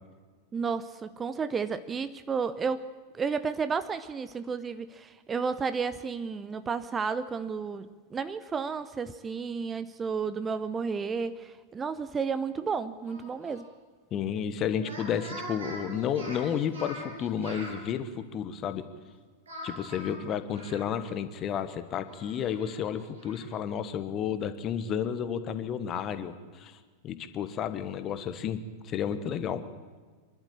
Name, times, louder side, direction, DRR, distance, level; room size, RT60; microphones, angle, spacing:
voice 1, 0.5-2.9 3.1-13.7, right 5 dB, 20° right, 14 dB, 0.7 m, -32 dB
Speech, 13.0-13.6 14.7-17.8 19.5-21.2 21.5-21.6 22.0-23.5, right 1 dB, 70° right, 6.7 m, -43 dB
voice 2, 14.1-18.8 19.6-26.8 27.0-28.6 28.8-29.6, left 8 dB, 30° left, 11 dB, 1.3 m, -32 dB
25.5 x 12.0 x 9.0 m, 1.5 s
figure-of-eight pair, 90°, 0 cm